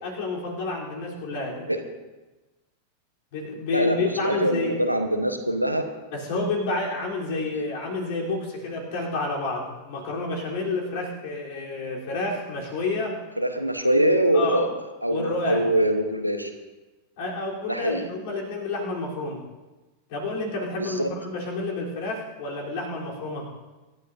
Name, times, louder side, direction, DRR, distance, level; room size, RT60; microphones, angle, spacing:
voice 1, 0.0-1.7 3.3-4.8 6.1-13.2 14.3-14.7 15.1-15.7 17.2-19.4 20.1-23.5, left 2 dB, 50° left, -2 dB, 3.8 m, -29 dB
voice 2, 4.2-5.9 13.4-14.7 15.0-16.5 17.7-18.1 21.0-21.1, right 1 dB, 90° right, 5 dB, 1.2 m, -23 dB
25.0 x 12.0 x 2.7 m, 1.2 s
figure-of-eight pair, 90°, 0 cm